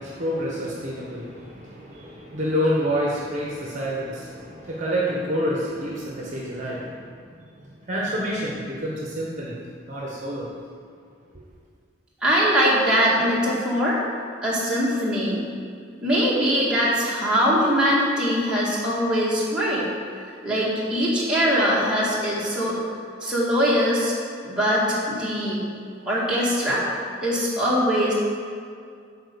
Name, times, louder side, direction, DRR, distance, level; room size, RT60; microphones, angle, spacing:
voice 1, 0.0-7.0 7.4-7.5 7.9-9.5 9.9-10.5, equal, 40° right, -4 dB, 1.1 m, -28 dB
voice 2, 12.2-14.0 14.4-15.4 16.0-19.8 20.4-22.8 23.2-24.1 24.4-25.6 26.1-26.8 27.2-28.1, equal, 5° right, -8 dB, 1.8 m, -22 dB
8.9 x 4.4 x 6.9 m, 2.3 s
head